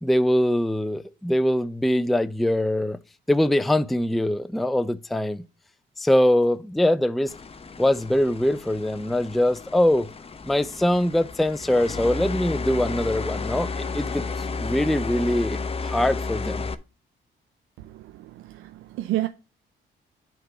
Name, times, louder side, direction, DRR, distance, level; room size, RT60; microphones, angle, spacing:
voice 1, 0.0-3.0 3.3-5.4 6.0-7.3 7.8-10.1 10.4-16.6, left 1 dB, ahead, 0.4 m, -23 dB
sound 1, 7.3-16.7, left 4 dB, 30° left, 0.8 m, -32 dB
voice 2, 17.8-19.3, right 15 dB, 90° right, 0.6 m, -30 dB
8.2 x 3.8 x 5.7 m
cardioid pair, 90°, 20 cm